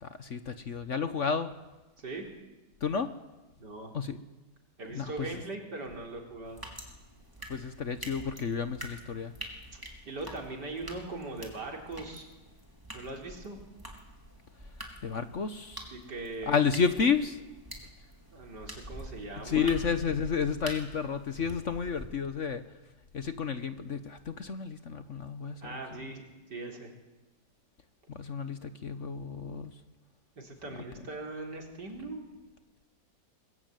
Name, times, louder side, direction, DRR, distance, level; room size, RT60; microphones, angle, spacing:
voice 1, 0.0-1.5 2.8-3.1 3.9-4.2 4.9-5.4 7.5-9.3 15.0-15.8 16.5-17.4 19.4-22.6 23.1-26.1 28.1-29.7, left 6 dB, 50° left, 10 dB, 1.3 m, -31 dB
voice 2, 2.0-2.3 3.6-4.0 4.8-6.7 9.7-12.3 12.9-13.6 15.9-16.6 18.3-19.7 25.6-26.9 30.4-32.2, right 2 dB, 70° right, 2 dB, 4.6 m, -40 dB
sound 1, 6.4-22.1, equal, 10° right, 3.7 m, -46 dB
23.0 x 22.0 x 9.1 m, 1.1 s
omnidirectional pair, 1.9 m